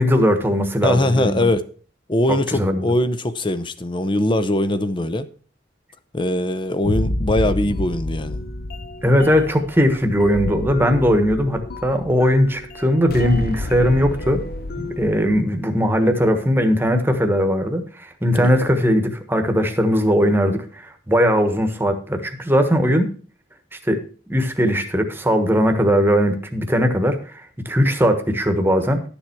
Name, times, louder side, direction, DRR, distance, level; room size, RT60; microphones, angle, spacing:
voice 1, 0.0-1.5 2.3-2.9 9.0-14.4 14.8-23.1 23.9-24.0 24.3-29.0, equal, 15° right, 1.3 m, -19 dB
voice 2, 0.8-1.6 2.1-5.3 6.1-8.5 18.3-18.5, left 1 dB, 25° left, 0.7 m, -21 dB
sound 1, 6.8-15.4, left 2 dB, 55° left, 0.9 m, -29 dB
11.5 x 7.1 x 4.6 m
head